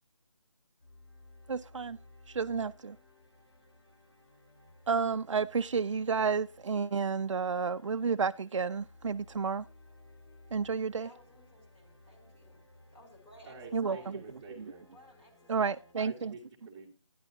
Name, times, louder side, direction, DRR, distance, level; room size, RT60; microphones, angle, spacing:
sound 1, 0.8-15.9, left 2 dB, 55° left, 4.9 m, -58 dB
voice 1, 1.5-2.0 2.3-3.0 4.9-9.6 10.5-11.1 13.7-14.0 15.5-16.3, right 5 dB, 75° right, 0.4 m, -31 dB
voice 2, 11.0-12.7 12.9-14.2 14.8-15.9, right 1 dB, 20° left, 2.5 m, -57 dB
voice 3, 13.4-14.8 16.0-17.0, right 4 dB, 10° right, 1.9 m, -48 dB
11.5 x 11.0 x 2.8 m
figure-of-eight pair, 165°, 16 cm